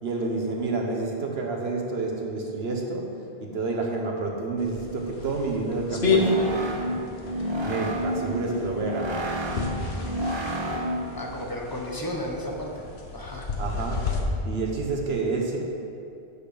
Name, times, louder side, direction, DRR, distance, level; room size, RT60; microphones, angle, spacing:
voice 1, 0.0-3.1 3.4-6.6 7.6-9.3 13.6-14.1 14.4-15.6, right 3 dB, 80° right, 1 dB, 1.4 m, -29 dB
sound 1, 4.6-14.2, left 3 dB, 75° left, 1.3 m, -31 dB
sound 2, 5.9-11.2, equal, 30° right, 0.8 m, -30 dB
voice 2, 11.2-12.9 13.1-13.5, equal, 20° left, 0 dB, 1.1 m, -33 dB
8.5 x 6.8 x 5.1 m, 2.6 s
omnidirectional pair, 1.0 m